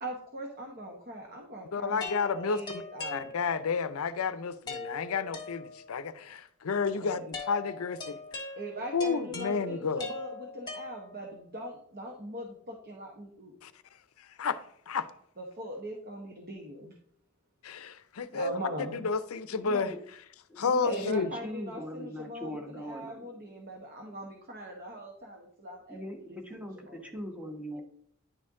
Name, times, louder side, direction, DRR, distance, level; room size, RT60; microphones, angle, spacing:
voice 1, 0.0-3.3 6.9-7.3 8.6-13.6 15.4-16.9 18.3-19.0 20.8-26.0 26.3-26.4 26.9-27.0, equal, 45° right, 1.1 m, -41 dB
voice 2, 1.7-2.8 3.1-8.4 8.9-10.0 13.6-13.7 14.2-14.6 14.9-15.1 17.6-19.9 20.6-21.3, left 5 dB, 80° left, 0.5 m, -31 dB
sound 1, 2.0-3.8 4.7-6.1 7.3-11.4, left 3 dB, 20° left, 1.4 m, -41 dB
voice 3, 19.5-20.0 20.5-23.3 25.9-27.8, equal, 5° right, 1.1 m, -41 dB
10.0 x 4.4 x 3.6 m
head